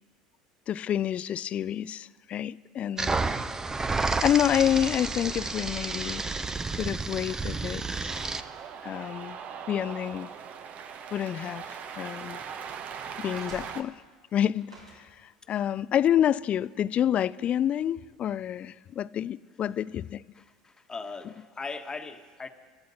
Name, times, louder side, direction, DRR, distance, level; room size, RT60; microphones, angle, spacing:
voice 1, 0.7-3.2 4.2-6.3 6.7-8.1 8.8-9.4 9.7-10.3 11.1-12.4 13.2-14.0 14.3-20.2, left 10 dB, 40° left, 0.4 m, -28 dB
sound 1, 3.0-8.4, right 3 dB, 15° right, 0.7 m, -30 dB
sound 2, 5.3-17.2, right 1 dB, 90° right, 4.0 m, -59 dB
Cheering, 8.1-13.8, right 7 dB, 45° right, 1.0 m, -40 dB
voice 2, 20.3-22.5, left 4 dB, 20° left, 1.3 m, -39 dB
23.5 x 14.0 x 4.2 m
hypercardioid pair, 70°, 3 cm